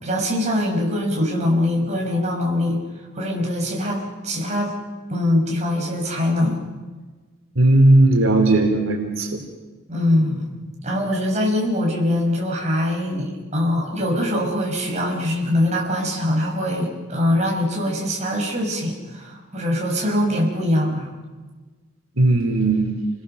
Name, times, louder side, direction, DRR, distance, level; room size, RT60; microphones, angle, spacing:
voice 1, 0.0-2.8 3.1-4.8 5.1-6.6 9.9-21.1, left 1 dB, 35° right, -1 dB, 5.5 m, -23 dB
voice 2, 7.5-9.4 22.2-22.9, right 2 dB, 85° right, 3 dB, 3.2 m, -16 dB
29.5 x 21.0 x 6.6 m, 1.3 s
head